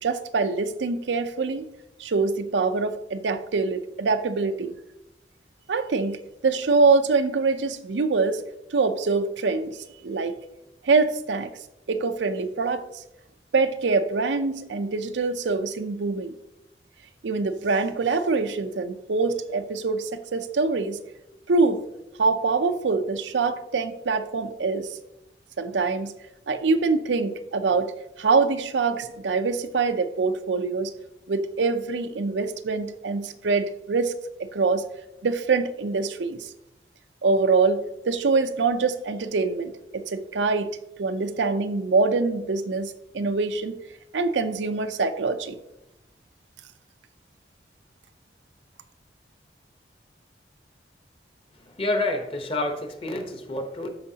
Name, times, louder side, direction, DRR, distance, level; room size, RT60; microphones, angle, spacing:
voice 1, 0.0-1.7 2.0-4.7 5.7-8.4 8.7-9.8 10.0-10.3 10.8-11.5 11.9-13.0 13.5-16.3 17.2-21.0 21.5-21.8 22.2-25.0 25.6-26.1 26.5-27.9 28.2-30.9 31.3-34.1 34.4-34.9 35.2-36.5 37.2-43.8 44.1-45.6, right 4 dB, 85° right, 10 dB, 0.6 m, -24 dB
voice 2, 51.5-53.9, left 2 dB, 30° left, 5 dB, 0.9 m, -28 dB
13.0 x 4.7 x 2.8 m, 0.90 s
head